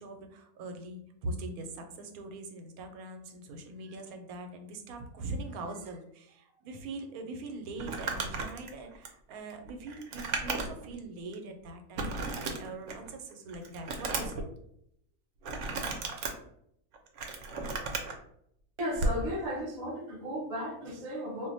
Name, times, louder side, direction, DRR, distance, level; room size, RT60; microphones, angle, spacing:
voice 1, 0.0-14.5, right 2 dB, 90° right, 5 dB, 1.1 m, -42 dB
Crumpling crinkling, 7.8-10.9 11.3-11.4 12.0-13.1 13.5-14.4 15.4-16.3 16.9-18.1 18.9-19.2, right 3 dB, 65° right, 0.8 m, -34 dB
voice 2, 18.8-21.5, equal, 50° right, 1 dB, 0.4 m, -35 dB
2.4 x 2.1 x 3.9 m, 0.72 s
omnidirectional pair, 1.5 m